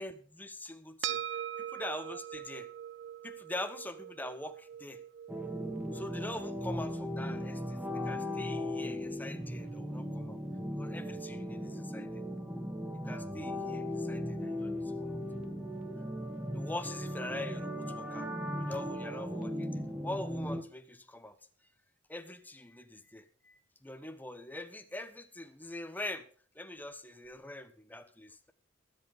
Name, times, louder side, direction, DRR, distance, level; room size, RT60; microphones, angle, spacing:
voice 1, 0.0-1.4 1.7-2.7 3.2-5.0 5.9-10.4 10.7-12.2 13.0-15.2 16.5-18.3 18.6-21.4 22.1-26.3 26.5-28.5, left 1 dB, 10° left, 9 dB, 1.1 m, -43 dB
sound 1, 1.0-9.6, right 10 dB, 70° right, 0.6 m, -43 dB
sound 2, 5.3-20.6, equal, 5° right, 1.7 m, -37 dB
22.5 x 8.2 x 3.6 m, 0.43 s
head